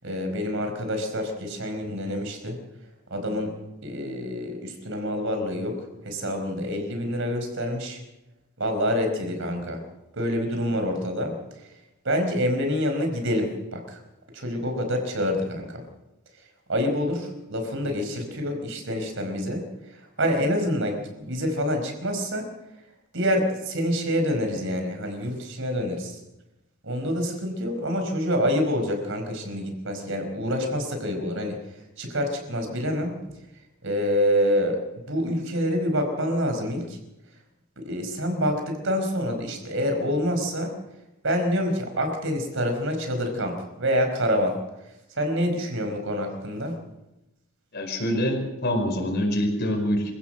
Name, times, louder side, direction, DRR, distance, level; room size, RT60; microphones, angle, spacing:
voice 1, 0.0-2.6 3.1-3.6 3.8-8.0 8.6-9.8 10.1-11.4 12.0-14.0 14.3-15.8 16.7-22.5 23.1-26.2 26.8-31.6 32.0-33.3 33.8-37.0 37.8-40.7 41.2-44.6 45.1-46.8, equal, 60° right, 5 dB, 4.8 m, -27 dB
voice 2, 47.7-50.1, equal, 50° left, 3 dB, 5.0 m, -25 dB
26.5 x 16.0 x 6.7 m, 0.95 s
head